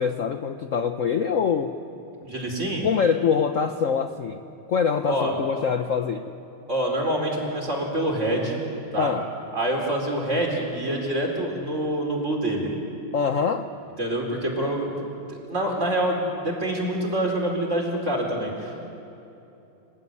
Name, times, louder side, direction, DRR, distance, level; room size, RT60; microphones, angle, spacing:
voice 1, 0.0-1.7 2.8-4.4 4.7-6.3 9.0-9.3 13.1-13.7, left 6 dB, 50° left, 7 dB, 1.0 m, -24 dB
voice 2, 2.2-2.9 5.1-5.3 6.7-8.6 8.9-9.1 9.5-12.7 14.0-15.0 15.3-18.9, right 1 dB, 35° right, 0 dB, 4.8 m, -26 dB
28.5 x 20.0 x 9.8 m, 2.9 s
omnidirectional pair, 2.1 m